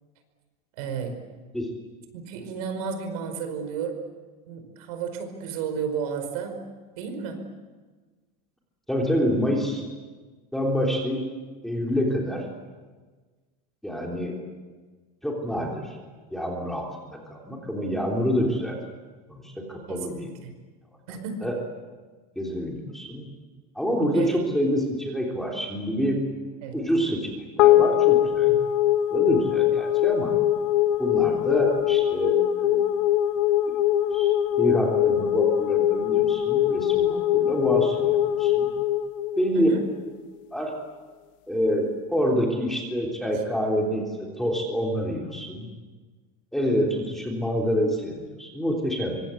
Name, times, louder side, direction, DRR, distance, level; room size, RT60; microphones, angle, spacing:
voice 1, 0.8-1.2 2.1-4.0 4.5-6.6 7.0-7.4 19.9-20.6 21.1-21.5 24.1-24.4 26.6-26.8 39.5-39.8, right 6 dB, 70° right, 7 dB, 5.0 m, -32 dB
voice 2, 8.9-9.8 10.5-11.2 11.6-12.4 13.8-14.3 15.2-16.0 16.3-18.8 19.3-20.3 21.4-21.6 22.3-23.2 23.7-26.2 26.7-27.3 27.6-28.5 29.1-30.3 31.0-32.9 33.7-33.8 34.1-38.7 39.4-39.7 40.5-40.7 41.5-44.1 44.4-45.7 46.5-49.2, equal, ahead, -1 dB, 3.4 m, -27 dB
sound 1, 27.6-40.1, left 12 dB, 55° left, 1.4 m, -22 dB
25.0 x 24.5 x 8.4 m, 1.4 s
supercardioid pair, 180°, 20 cm